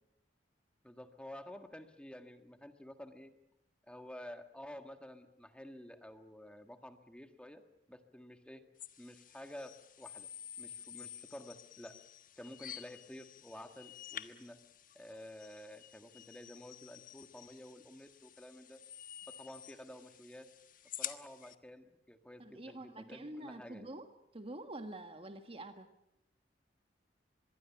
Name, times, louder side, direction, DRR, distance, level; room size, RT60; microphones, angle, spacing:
voice 1, 0.8-3.3 3.9-7.6 7.9-8.6 9.0-10.3 10.6-12.0 12.4-14.6 14.9-18.8 19.3-20.5 21.0-23.9, left 1 dB, 5° left, 7 dB, 1.6 m, -51 dB
sound 1, 8.8-21.6, left 11 dB, 50° left, 1.3 m, -50 dB
voice 2, 22.4-24.1 24.3-25.9, right 1 dB, 30° right, 7 dB, 1.5 m, -46 dB
25.5 x 22.0 x 7.2 m, 0.82 s
head